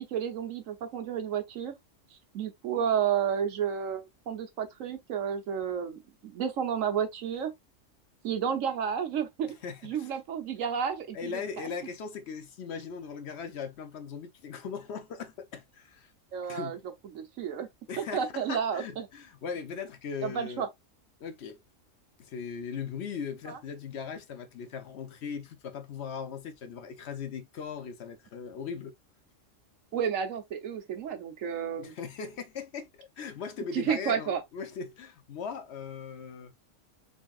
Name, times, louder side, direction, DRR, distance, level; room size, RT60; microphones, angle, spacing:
voice 1, 0.0-1.7 2.1-7.5 8.2-9.5 9.8-11.7 16.3-16.8 17.1-17.7 18.0-19.1 20.2-20.7 23.5-23.6 29.9-31.9 33.7-34.4, right 8 dB, 90° right, 1.3 m, -31 dB
voice 2, 9.6-10.1 11.1-16.1 16.5-16.8 17.9-20.7 21.2-21.6 22.2-28.9 31.8-36.5, left 6 dB, 60° left, 0.9 m, -39 dB
3.9 x 3.5 x 2.4 m
omnidirectional pair, 1.3 m